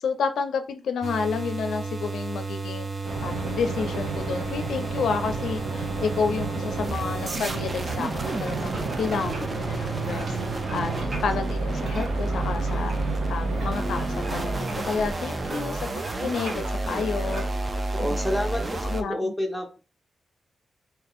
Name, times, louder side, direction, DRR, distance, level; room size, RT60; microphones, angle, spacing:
voice 1, 0.0-2.9 3.2-10.4 10.7-10.9 11.2-12.9 13.3-15.8 16.2-17.5 18.1-18.2 18.9-19.3, left 5 dB, 90° left, 7 dB, 0.5 m, -30 dB
sound 1, 1.0-19.0, right 2 dB, 25° right, 0.4 m, -30 dB
sound 2, 3.0-15.4, right 3 dB, 80° right, 1.0 m, -34 dB
sound 3, 7.9-17.8, right 1 dB, 55° right, 1.3 m, -41 dB
voice 2, 17.9-19.8, left 1 dB, ahead, 1 dB, 0.8 m, -29 dB
2.8 x 2.6 x 4.1 m, 0.33 s
wide cardioid pair, 140°, 0 cm